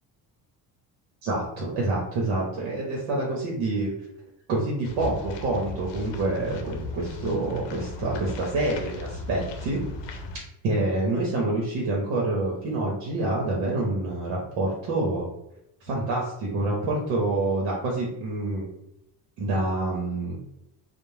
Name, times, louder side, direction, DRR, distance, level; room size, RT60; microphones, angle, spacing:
voice 1, 1.2-3.9 4.5-9.8 10.6-15.3 15.8-18.6 19.4-20.4, right 2 dB, 75° right, -2 dB, 0.8 m, -27 dB
sound 1, 4.8-10.4, left 3 dB, 60° left, 0.7 m, -37 dB
2.5 x 2.0 x 3.1 m, 0.81 s
supercardioid pair, 65°, 48 cm